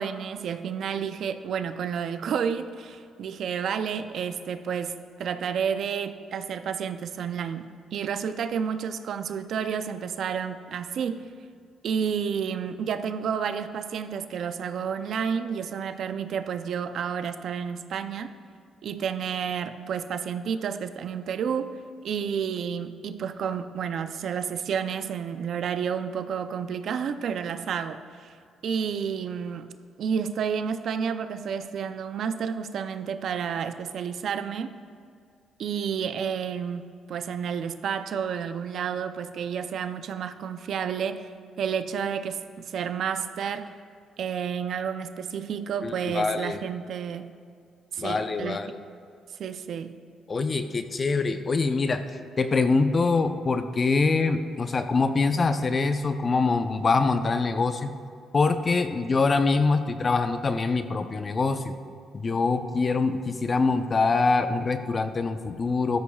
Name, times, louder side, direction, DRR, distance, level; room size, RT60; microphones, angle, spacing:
voice 1, 0.0-11.3 11.8-18.4 18.8-21.8 22.0-28.3 28.6-29.7 30.0-34.8 35.6-41.3 41.6-43.7 44.2-47.3 47.9-48.6 49.4-50.0, right 7 dB, 65° right, 10 dB, 0.5 m, -30 dB
voice 2, 45.8-46.6 48.0-48.8 50.3-57.9 58.3-61.8 62.1-66.0, left 4 dB, 35° left, 8 dB, 0.7 m, -24 dB
15.5 x 13.0 x 2.4 m, 2.2 s
cardioid pair, 90°, 0 cm